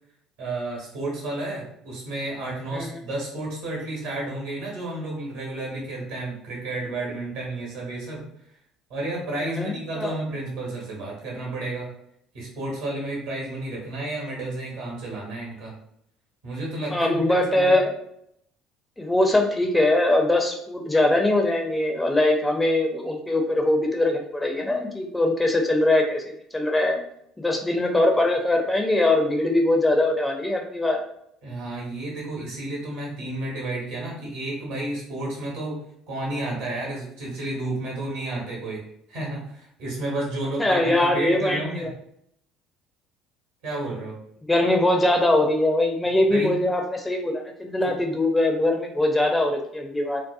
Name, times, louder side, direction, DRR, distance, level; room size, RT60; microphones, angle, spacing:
voice 1, 0.4-8.2 8.9-11.9 12.3-15.7 16.4-17.7 31.4-35.8 36.1-38.8 39.1-41.9 43.6-44.1 46.3-46.5, right 2 dB, 70° right, -2 dB, 1.1 m, -31 dB
voice 2, 9.4-10.1 16.9-17.9 19.0-26.2 26.5-27.0 27.4-31.0 40.6-41.9 44.5-50.2, left 1 dB, 10° left, 2 dB, 0.4 m, -22 dB
2.7 x 2.0 x 2.4 m, 0.73 s
figure-of-eight pair, 60°, 0 cm